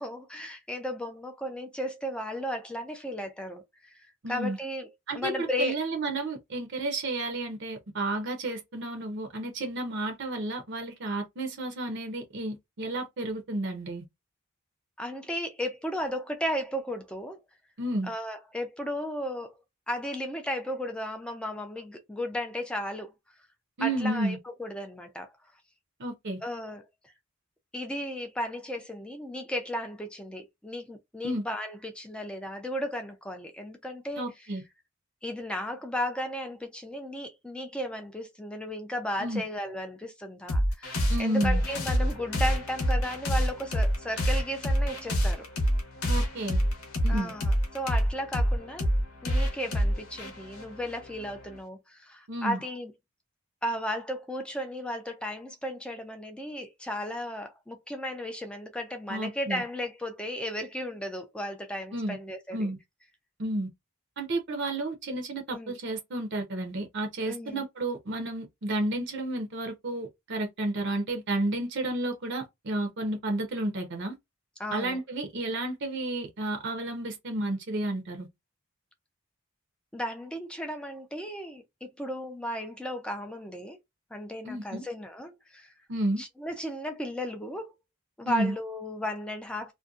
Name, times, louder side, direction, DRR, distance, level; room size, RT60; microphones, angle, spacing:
voice 1, 0.0-5.7 15.0-17.4 18.0-19.6 19.9-23.1 23.8-25.3 26.4-26.8 27.7-34.2 35.2-45.5 47.1-48.9 49.2-52.9 53.6-62.7 65.5-65.7 67.2-67.7 74.6-75.0 79.9-83.8 84.1-85.7 86.2-87.7 88.2-89.7, equal, 5° left, 0.3 m, -35 dB
voice 2, 4.2-4.6 5.1-14.0 17.8-18.1 23.8-24.4 26.0-26.4 31.2-31.4 34.2-34.6 39.2-39.4 41.1-41.6 46.1-46.6 47.0-47.3 52.3-52.6 59.1-59.6 61.9-62.2 62.5-62.8 63.4-63.7 64.2-74.2 74.7-78.3 84.4-84.8 85.9-86.2 88.2-88.5, right 1 dB, 55° right, 0.6 m, -31 dB
sound 1, 40.5-51.6, equal, 85° left, 0.8 m, -27 dB
2.6 x 2.1 x 2.3 m
head